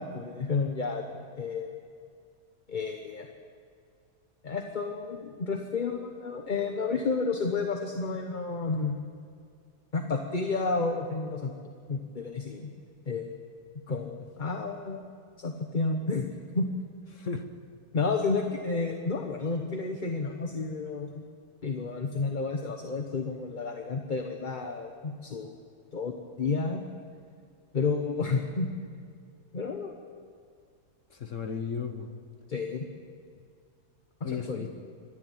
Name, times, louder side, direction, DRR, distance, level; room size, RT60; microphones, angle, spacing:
voice 1, 0.0-1.7 2.7-3.3 4.4-9.0 9.9-11.5 11.9-12.7 13.1-13.3 13.9-14.1 14.4-15.0 15.4-16.3 16.5-16.7 17.9-21.2 21.6-25.5 25.9-26.8 27.7-28.7 29.5-29.9 32.5-32.9 34.2-34.7, left 4 dB, 35° left, 4 dB, 1.1 m, -31 dB
voice 2, 13.9-14.2 17.1-17.4 31.1-32.1 34.2-34.7, left 5 dB, 55° left, 7 dB, 1.3 m, -35 dB
26.0 x 11.0 x 9.2 m, 2.2 s
omnidirectional pair, 1.7 m